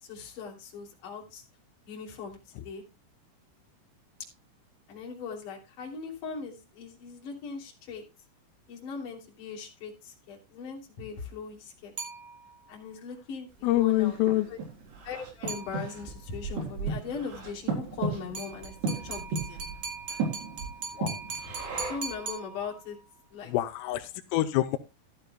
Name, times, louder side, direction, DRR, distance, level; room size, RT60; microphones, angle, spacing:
voice 1, 0.0-1.4 1.9-2.4 2.6-2.8 4.9-8.0 8.7-11.9 12.7-14.2 14.5-14.6 15.0-19.6 21.3-23.0 23.3-23.5, left 5 dB, 45° left, -1 dB, 4.0 m, -40 dB
sound 1, 12.0-12.8 15.5-16.2 18.4-23.0, right 5 dB, 40° right, 3.4 m, -40 dB
voice 2, 13.6-14.5 21.0-21.2 23.5-24.8, left 15 dB, 90° left, 9 dB, 3.4 m, -26 dB
Breathing, 13.7-22.2, right 4 dB, 55° right, 5.5 m, -35 dB
14.5 x 12.5 x 2.3 m, 0.25 s
omnidirectional pair, 5.8 m